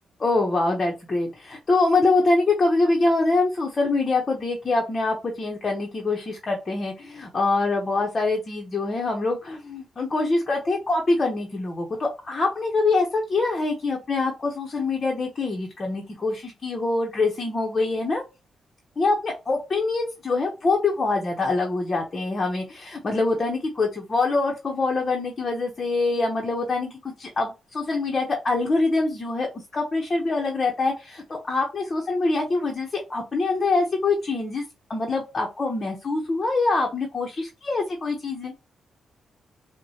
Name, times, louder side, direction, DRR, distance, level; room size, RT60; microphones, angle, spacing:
voice 1, 0.2-18.2 19.0-34.6 34.9-38.5, left 3 dB, 30° left, 0 dB, 0.8 m, -24 dB
5.8 x 2.2 x 2.8 m, 0.27 s
wide cardioid pair, 135°, 0 cm